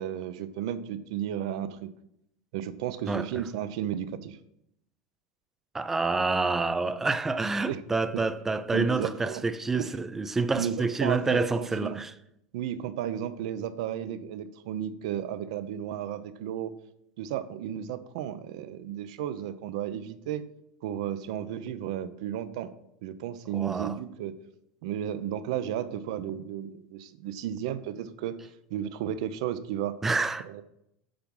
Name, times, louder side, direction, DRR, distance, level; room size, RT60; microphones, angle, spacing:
voice 1, 0.0-1.9 2.5-4.4 7.7-7.8 8.1-8.2 8.7-9.4 9.7-9.9 10.5-12.0 12.5-16.7 17.2-20.4 20.8-22.7 23.0-24.3 24.8-28.4 28.7-30.0 30.5-30.6, right 10 dB, 65° right, 0.7 m, -33 dB
voice 2, 3.1-3.4 5.7-12.1 23.5-24.0 30.0-30.6, right 3 dB, 10° right, 0.4 m, -28 dB
8.6 x 6.0 x 5.5 m
supercardioid pair, 170°, 3 cm